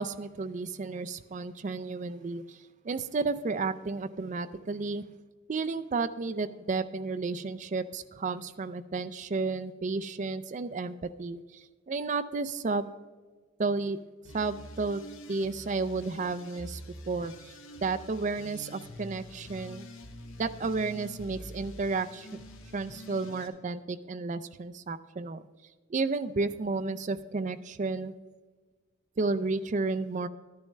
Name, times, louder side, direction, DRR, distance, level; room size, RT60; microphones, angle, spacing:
voice 1, 0.0-2.6 2.8-5.0 5.5-12.9 13.6-14.0 14.3-15.0 15.3-17.5 17.8-19.9 20.4-22.3 22.7-25.4 25.9-28.1 29.2-30.3, right 3 dB, 35° right, 11 dB, 0.4 m, -32 dB
sound 1, 14.2-23.5, equal, 75° left, 1.1 m, -46 dB
11.5 x 10.5 x 3.2 m, 1.4 s
head